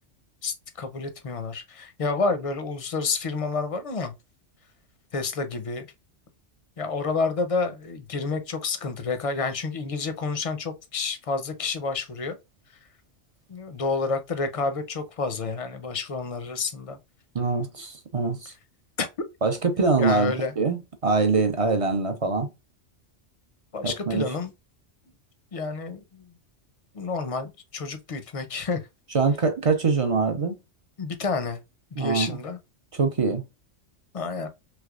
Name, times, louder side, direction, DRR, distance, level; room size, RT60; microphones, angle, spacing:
voice 1, 0.4-4.1 5.1-5.9 6.8-12.4 13.5-17.0 19.0-19.1 20.0-20.5 23.7-24.5 25.5-26.2 26.9-28.9 31.0-31.6 31.9-32.6 34.1-34.5, left 4 dB, 45° left, 0.5 m, -29 dB
voice 2, 17.3-18.5 19.4-22.5 23.8-24.2 29.1-30.5 32.0-32.4 32.9-33.4, right 4 dB, 45° right, 0.4 m, -24 dB
3.3 x 3.1 x 2.4 m
omnidirectional pair, 1.2 m